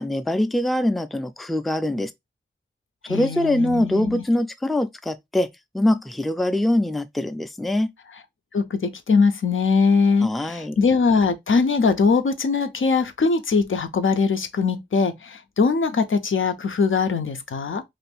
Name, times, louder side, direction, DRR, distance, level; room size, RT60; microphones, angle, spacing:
voice 1, 0.0-2.1 3.1-5.5 5.7-7.9 10.2-10.8, left 1 dB, ahead, 0.3 m, -23 dB
voice 2, 3.1-4.2 8.5-17.8, left 4 dB, 85° left, 0.5 m, -21 dB
2.5 x 2.5 x 3.3 m
wide cardioid pair, 65°, 20 cm